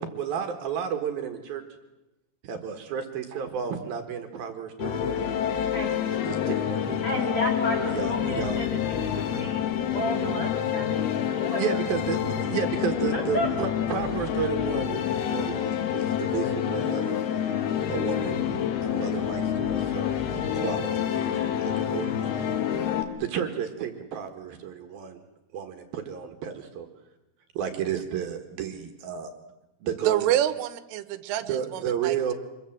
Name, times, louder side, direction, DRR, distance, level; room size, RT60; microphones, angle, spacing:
voice 1, 0.0-1.6 2.4-6.0 6.3-7.3 7.8-8.6 9.9-10.5 11.6-17.2 17.9-18.4 18.8-22.4 22.7-22.9 23.2-25.2 25.5-26.9 27.5-29.3 29.8-30.3 31.5-32.3, right 8 dB, 60° right, 6 dB, 2.9 m, -32 dB
sound 1, 4.8-23.0, left 9 dB, 60° left, 3.0 m, -28 dB
voice 2, 5.6-6.2 7.0-9.6 9.9-11.8 12.1-12.2 13.1-13.5, equal, 40° left, 1 dB, 2.3 m, -33 dB
voice 3, 30.1-32.3, right 12 dB, 85° right, 13 dB, 3.5 m, -27 dB
25.5 x 22.0 x 7.5 m, 0.96 s
omnidirectional pair, 5.7 m